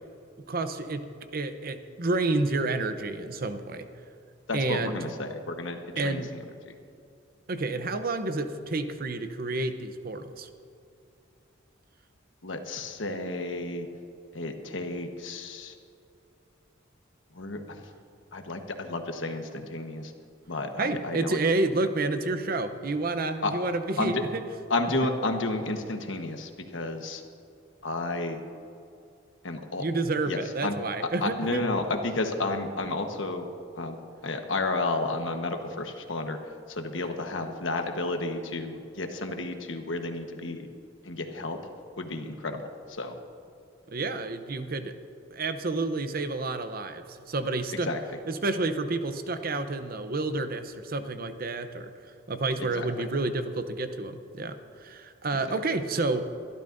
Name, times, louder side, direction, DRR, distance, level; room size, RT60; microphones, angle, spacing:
voice 1, 0.5-1.1 1.3-3.9 4.5-5.1 6.0-6.3 7.5-10.5 20.8-24.4 29.8-31.6 43.9-44.9 45.3-47.9 48.3-51.9 52.3-56.3, right 2 dB, 50° right, 9 dB, 0.7 m, -29 dB
voice 2, 4.5-6.7 12.4-13.9 14.3-15.8 17.3-17.9 18.3-20.1 20.5-21.4 23.4-23.5 24.0-24.2 24.7-27.2 27.8-28.4 29.4-29.9 30.3-30.7 31.2-33.5 33.8-34.0 34.2-36.4 36.7-40.7 41.0-41.6 42.0-43.2 47.7-48.2 52.6-53.1, left 2 dB, 75° left, 5 dB, 1.2 m, -32 dB
24.5 x 12.0 x 2.6 m, 2.6 s
head